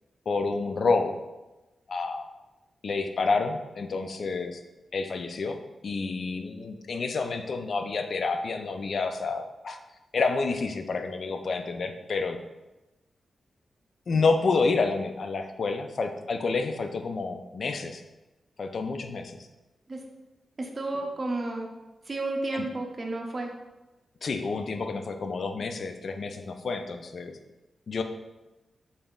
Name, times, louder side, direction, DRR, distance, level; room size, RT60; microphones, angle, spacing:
voice 1, 0.3-1.2 1.9-2.3 2.8-4.6 4.9-5.6 5.8-9.8 10.1-12.4 14.1-18.0 18.6-19.5 22.5-22.7 24.2-27.4 27.9-28.0, left 4 dB, 65° left, 7 dB, 0.3 m, -29 dB
voice 2, 20.6-21.7 22.1-23.5, right 2 dB, 45° right, 1 dB, 0.5 m, -32 dB
3.9 x 3.6 x 2.3 m, 1.1 s
supercardioid pair, 40°, 0 cm